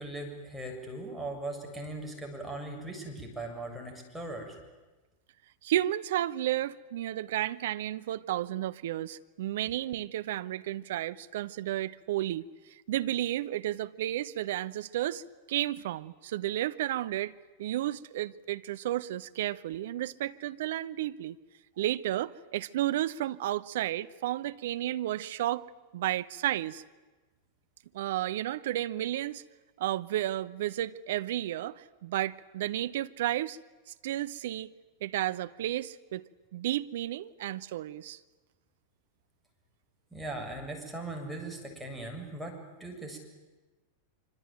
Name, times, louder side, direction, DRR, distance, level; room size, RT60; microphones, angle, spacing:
voice 1, 0.0-4.6 40.1-43.2, right 2 dB, 5° right, 7.2 m, -39 dB
voice 2, 5.6-15.2 15.5-17.3 17.6-21.4 21.8-25.6 25.9-26.8 27.9-29.4 29.8-33.6 34.0-34.7 35.0-38.2, right 13 dB, 55° right, 1.0 m, -32 dB
26.0 x 25.5 x 9.1 m
figure-of-eight pair, 90°, 0 cm